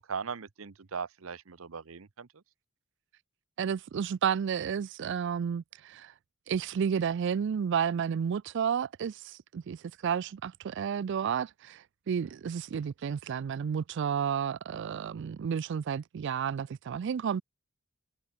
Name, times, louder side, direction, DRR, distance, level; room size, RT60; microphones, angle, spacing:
voice 1, 0.0-2.3, right 5 dB, 75° right, 0.8 m, -39 dB
voice 2, 3.6-6.1 6.5-17.4, right 7 dB, 60° right, 0.3 m, -31 dB
head